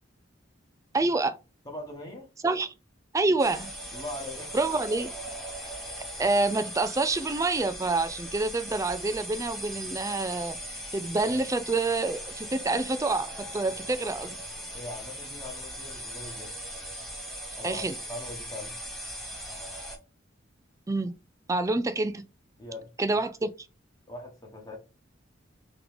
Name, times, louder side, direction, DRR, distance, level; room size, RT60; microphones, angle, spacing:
voice 1, 0.9-1.4 2.4-2.7 3.1-3.7 4.5-5.1 6.2-10.6 10.9-14.4 17.6-17.9 20.9-21.1 21.5-22.3 23.0-23.5, right 3 dB, 15° right, 0.3 m, -27 dB
voice 2, 1.6-2.3 3.9-4.5 11.3-11.5 14.7-16.6 17.6-18.7 22.6-22.9 24.1-24.8, left 2 dB, 20° left, 1.2 m, -41 dB
sound 1, 3.4-20.0, equal, ahead, 0.8 m, -39 dB
3.7 x 3.0 x 3.5 m
head